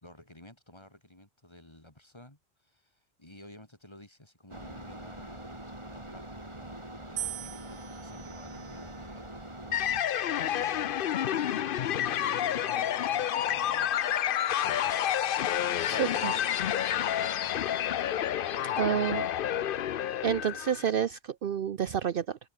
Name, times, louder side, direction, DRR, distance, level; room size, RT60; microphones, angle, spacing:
voice 1, 0.0-5.6 5.9-6.3 6.5-9.2 9.5-13.9 14.5-14.9 15.7-17.5, left 1 dB, 25° left, 3.5 m, -53 dB
sound 1, 4.5-10.0, right 1 dB, 25° right, 4.1 m, -43 dB
sound 2, 7.2-9.4 10.2-10.7, right 12 dB, 85° right, 0.9 m, -42 dB
sound 3, 9.7-20.9, left 10 dB, 60° left, 0.7 m, -29 dB
voice 2, 15.9-16.3 18.8-19.3 20.2-22.4, right 8 dB, 60° right, 0.8 m, -29 dB
open air
omnidirectional pair, 1.1 m